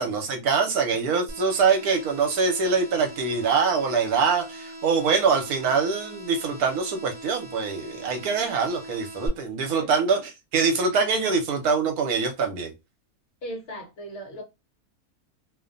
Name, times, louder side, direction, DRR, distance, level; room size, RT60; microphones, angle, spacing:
voice 1, 0.0-12.7, right 5 dB, 80° right, 1.2 m, -24 dB
sound 1, 1.3-9.3, right 1 dB, 25° right, 0.4 m, -41 dB
voice 2, 13.4-14.4, equal, 50° left, 0.9 m, -37 dB
2.7 x 2.2 x 2.5 m
omnidirectional pair, 1.6 m